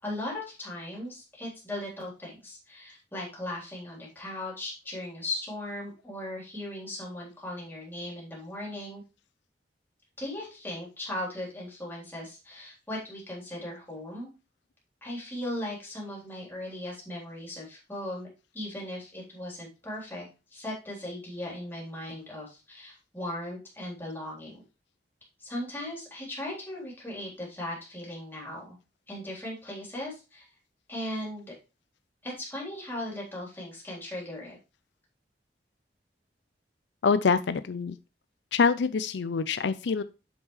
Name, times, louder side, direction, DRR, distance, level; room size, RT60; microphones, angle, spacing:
voice 1, 0.0-9.0 10.2-14.3 15.0-18.3 18.5-20.3 20.5-24.6 25.4-28.8 29.1-30.5 30.9-31.5 32.2-34.6, left 1 dB, 10° left, -4 dB, 3.5 m, -38 dB
voice 2, 37.0-38.0 38.5-40.0, left 5 dB, 80° left, 13 dB, 0.5 m, -25 dB
7.9 x 5.5 x 3.2 m, 0.30 s
head